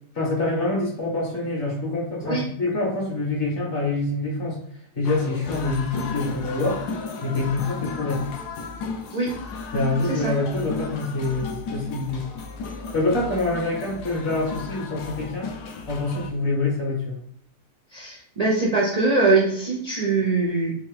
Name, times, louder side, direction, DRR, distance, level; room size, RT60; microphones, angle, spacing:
voice 1, 0.1-4.6 4.9-6.9 7.2-8.3 9.7-12.3 12.9-15.5 15.9-17.2, left 2 dB, 50° left, -3 dB, 1.4 m, -26 dB
sound 1, 5.0-16.3, left 4 dB, 85° left, 1.2 m, -35 dB
voice 2, 17.9-20.7, right 3 dB, 60° right, -3 dB, 0.4 m, -22 dB
3.5 x 2.9 x 3.6 m, 0.68 s
omnidirectional pair, 1.7 m